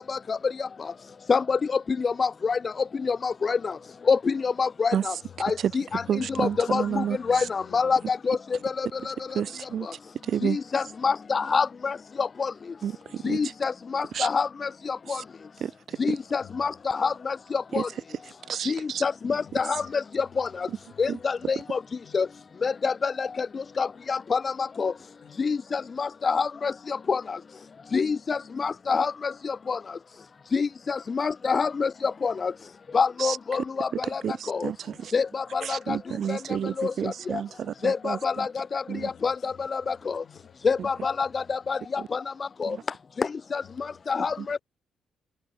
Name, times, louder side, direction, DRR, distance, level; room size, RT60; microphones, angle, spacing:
voice 1, 0.1-0.7 1.3-1.6 2.0-2.6 3.0-3.7 4.1-5.1 5.4-6.0 6.4-8.4 8.8-9.1 10.4-12.5 13.2-15.2 16.0-17.9 18.7-20.7 21.0-21.8 22.1-22.3 22.6-23.5 23.8-24.5 24.8-24.9 25.4-27.4 27.9-29.8 30.5-31.9 32.2-32.5 32.9-34.2 34.5-34.7 35.1-36.0 36.3-36.4 36.8-36.9 37.8-40.2 40.6-42.2 42.6-42.8 43.2-43.6 44.1-44.6, left 5 dB, 35° left, 0.5 m, -27 dB
voice 2, 5.2-5.6 5.9-8.8 9.3-9.8 13.2-13.4 15.9-16.1 16.4-16.9 19.3-20.6 20.9-21.5 22.0-22.2 25.2-25.5 28.7-28.8 34.8-35.0 37.6-37.8 38.9-40.8 41.2-41.8 43.6-44.1 44.5-44.6, left 10 dB, 65° left, 7.0 m, -52 dB
voice 3, 6.1-7.5 9.3-9.9 10.2-10.6 12.8-13.5 14.1-14.3 15.1-15.2 15.6-16.2 17.7-18.2 18.5-19.0 20.7-20.8 21.1-21.2 33.2-33.6 33.9-35.1 35.6-38.5 38.9-39.1 40.8-40.9 42.0-42.1 42.6-42.8 44.4-44.5, right 9 dB, 60° right, 0.9 m, -31 dB
cardioid pair, 90°, 0 cm